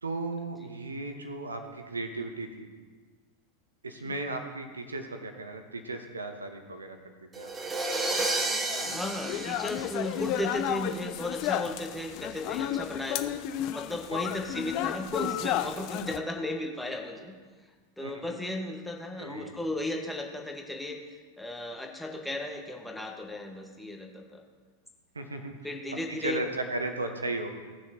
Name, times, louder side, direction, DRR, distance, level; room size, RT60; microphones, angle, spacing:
voice 1, 0.0-2.7 3.8-7.5 18.0-18.2 19.2-19.6 25.1-25.5 26.1-27.5, right 2 dB, 75° right, 6 dB, 1.2 m, -36 dB
sound 1, 7.3-10.6, right 2 dB, 20° right, 1.5 m, -31 dB
sound 2, 8.6-16.2, left 12 dB, 45° left, 0.5 m, -33 dB
voice 2, 8.9-13.4 13.7-17.3 18.0-21.0 21.4-24.4 25.6-26.4, left 1 dB, 5° left, 1 dB, 1.5 m, -35 dB
18.0 x 6.4 x 2.9 m, 1.5 s
figure-of-eight pair, 90°, 0 cm